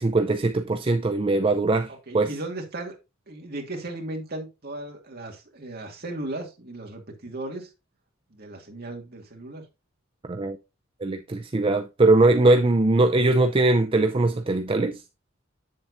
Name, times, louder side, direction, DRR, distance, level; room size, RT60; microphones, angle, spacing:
voice 1, 0.0-2.3 10.2-10.6 11.0-14.9, right 2 dB, 25° right, 0.4 m, -21 dB
voice 2, 2.1-3.0 3.3-7.7 8.3-9.6, right 2 dB, 50° right, 2.0 m, -36 dB
7.7 x 7.3 x 2.6 m
head